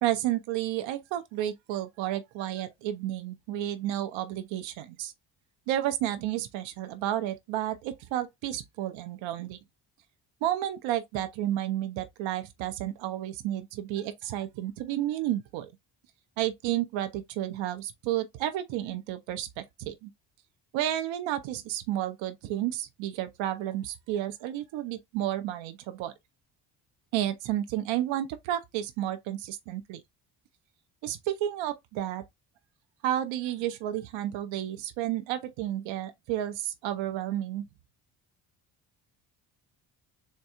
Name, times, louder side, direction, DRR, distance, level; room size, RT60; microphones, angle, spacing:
voice 1, 0.0-5.1 5.7-9.6 10.4-15.7 16.4-20.1 20.7-26.1 27.1-30.0 31.0-32.2 33.0-37.6, right 12 dB, 90° right, 0.7 m, -31 dB
3.6 x 2.2 x 4.2 m
cardioid pair, 75°, 44 cm